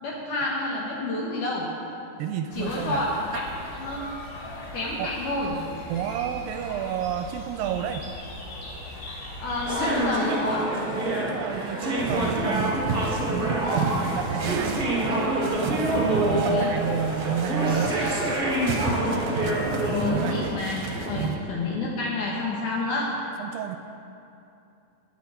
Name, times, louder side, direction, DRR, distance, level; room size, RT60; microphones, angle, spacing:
voice 1, 0.0-1.7 2.5-3.4 3.7-4.2 4.7-5.6 9.4-10.7 16.5-16.7 19.0-19.4 19.9-23.1, left 2 dB, 65° left, -4 dB, 2.6 m, -29 dB
voice 2, 2.2-3.0 3.3-3.4 5.0-5.2 5.9-8.1 11.0-15.1 15.6-18.0 20.0-20.5 21.2-21.4 23.4-23.8, right 9 dB, 80° right, 6 dB, 2.2 m, -31 dB
sound 1, 2.5-10.0, left 1 dB, 90° left, 4.6 m, -39 dB
sound 2, 9.6-20.5, right 1 dB, 35° right, 0.8 m, -26 dB
sound 3, 12.0-21.4, right 4 dB, 65° right, 1.9 m, -32 dB
20.5 x 8.9 x 4.4 m, 2.8 s
omnidirectional pair, 4.1 m